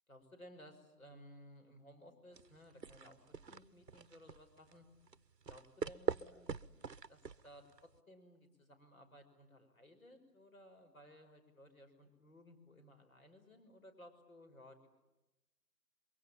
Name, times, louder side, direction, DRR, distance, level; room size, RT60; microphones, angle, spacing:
voice 1, 0.1-4.8 5.4-6.8 7.1-14.9, equal, 55° left, 6 dB, 5.9 m, -59 dB
sound 1, 2.3-8.0, right 5 dB, 85° right, 1.0 m, -44 dB
28.0 x 23.5 x 8.8 m, 0.99 s
figure-of-eight pair, 165°, 49 cm